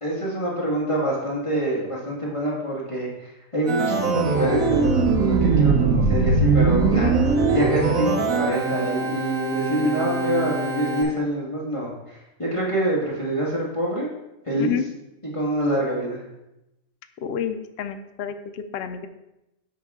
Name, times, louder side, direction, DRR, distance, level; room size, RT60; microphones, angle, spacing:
voice 1, 0.0-7.1 7.5-14.1 14.5-14.8 15.3-16.2, right 1 dB, 25° left, -6 dB, 1.7 m, -26 dB
Organ, 3.7-11.0, right 4 dB, 80° right, 1.2 m, -21 dB
voice 2, 17.2-19.1, left 8 dB, 65° left, 8 dB, 0.7 m, -29 dB
7.9 x 5.6 x 3.6 m, 0.92 s
omnidirectional pair, 1.4 m